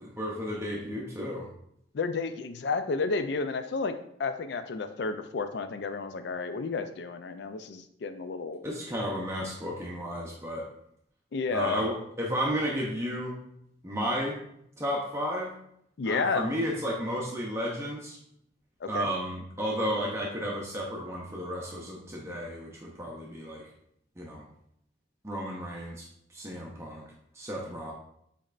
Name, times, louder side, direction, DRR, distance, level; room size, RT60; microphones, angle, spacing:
voice 1, 0.0-1.5 8.6-10.7 11.5-13.4 13.8-14.4 14.8-15.5 16.0-18.2 18.9-23.6 24.2-24.4 25.2-26.0 26.3-27.0 27.3-27.9, equal, 15° right, -3 dB, 0.6 m, -33 dB
voice 2, 1.9-3.9 4.2-8.6 11.3-11.8 16.0-16.5 18.8-19.1, left 4 dB, 65° left, 10 dB, 0.4 m, -31 dB
5.1 x 4.2 x 2.5 m, 0.72 s
head